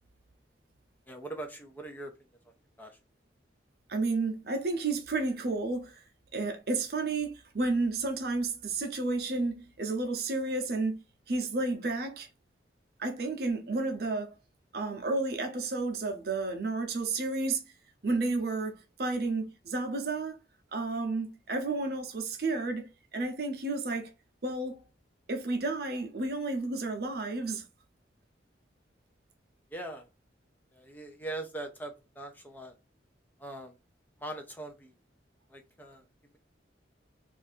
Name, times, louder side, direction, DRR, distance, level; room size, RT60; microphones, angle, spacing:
voice 1, 1.1-2.1 2.8-3.0 29.7-30.0 30.7-32.8 33.4-33.7 34.2-34.9 35.5-36.0, right 2 dB, 10° left, 0.5 m, -41 dB
voice 2, 3.9-6.0 6.3-12.3 13.0-14.3 14.7-17.6 18.0-20.4 20.7-24.1 24.4-24.8 25.3-27.6, right 3 dB, 55° right, 0.6 m, -31 dB
2.6 x 2.5 x 4.1 m
head